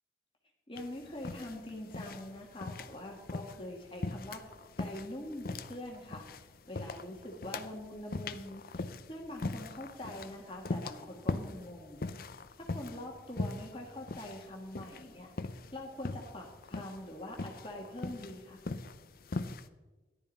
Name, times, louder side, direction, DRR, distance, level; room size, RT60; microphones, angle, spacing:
voice 1, 0.7-4.5 4.8-6.2 6.7-8.8 9.1-12.1 12.6-15.3 15.7-18.6, left 1 dB, 30° left, 0 dB, 1.6 m, -44 dB
sound 1, 0.8-19.7, left 3 dB, 50° left, 0.6 m, -41 dB
14.0 x 11.5 x 4.1 m, 1.2 s
head